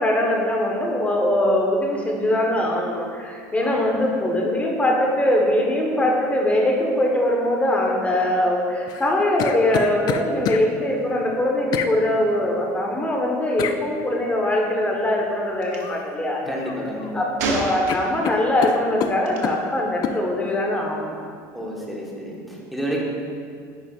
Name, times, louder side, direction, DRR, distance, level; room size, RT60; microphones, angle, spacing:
voice 1, 0.0-16.4 17.1-21.2, left 1 dB, 15° left, -1 dB, 1.3 m, -22 dB
voice 2, 3.6-4.0 16.4-17.3 21.5-23.0, equal, ahead, -4 dB, 1.5 m, -30 dB
sound 1, 8.9-10.6 11.7-11.9 13.6-13.8 15.8-16.1 16.4-17.1 17.4-17.5 17.9-19.6 20.0-20.2, left 8 dB, 50° left, 0.4 m, -28 dB
Gunshot gunfire, 15.6-15.8 17.4-18.4 19.3-19.5, right 2 dB, 85° right, 0.9 m, -27 dB
10.0 x 4.8 x 2.5 m, 2.2 s
supercardioid pair, 100°, 9 cm